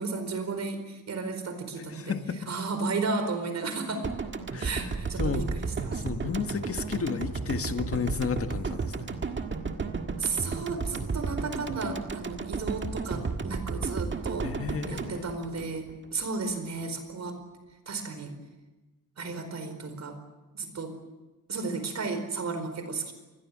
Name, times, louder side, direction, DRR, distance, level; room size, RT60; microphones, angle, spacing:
voice 1, 0.0-2.2 2.5-4.1 4.6-6.0 10.2-14.5 14.9-17.4 17.9-18.3 19.2-20.2 20.5-20.9 21.5-23.1, right 4 dB, 50° right, 8 dB, 4.6 m, -33 dB
voice 2, 1.9-2.5 4.5-4.9 5.2-5.5 5.8-9.2 14.4-15.4, left 5 dB, 40° left, 8 dB, 1.7 m, -33 dB
sound 1, 4.0-16.2, right 4 dB, 30° right, 1.7 m, -33 dB
26.5 x 21.0 x 7.5 m, 1.1 s
wide cardioid pair, 180°, 36 cm